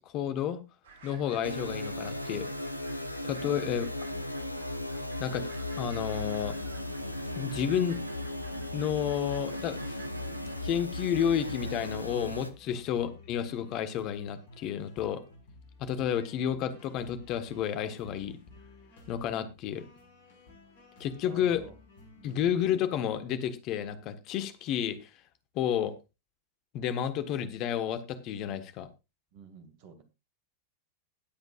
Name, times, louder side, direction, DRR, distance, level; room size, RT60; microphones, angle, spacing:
voice 1, 0.1-0.6 1.0-2.5 3.2-3.8 5.2-5.5 5.8-6.6 7.3-8.0 8.7-10.0 10.6-15.2 15.8-18.4 19.1-19.8 21.0-21.6 22.2-25.0 25.5-25.9 26.7-28.9, left 9 dB, 40° left, 11 dB, 1.4 m, -31 dB
sound 1, 0.8-12.0, right 4 dB, 65° right, 2.6 m, -52 dB
sound 2, 1.4-12.5, left 1 dB, 90° left, 0.9 m, -36 dB
voice 2, 3.4-3.7 12.6-12.9 21.2-21.7 22.2-22.4 29.3-30.0, right 6 dB, 45° right, 9 dB, 2.1 m, -50 dB
sound 3, 5.2-22.9, left 3 dB, 60° left, 5.2 m, -55 dB
20.5 x 8.0 x 2.5 m, 0.27 s
figure-of-eight pair, 90°, 0 cm